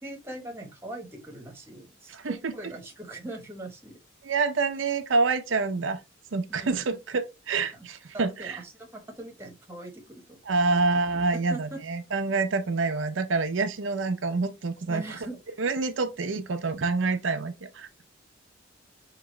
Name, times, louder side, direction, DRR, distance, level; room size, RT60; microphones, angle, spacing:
voice 1, 0.0-4.0 6.5-6.8 7.7-7.9 8.1-10.4 10.7-10.9 11.3-11.8 14.9-15.4, right 2 dB, 15° right, 1.0 m, -41 dB
voice 2, 2.1-2.5 4.2-6.0 6.3-8.6 10.5-15.0 15.6-18.1, right 3 dB, 90° right, 0.6 m, -27 dB
4.8 x 2.9 x 3.1 m
head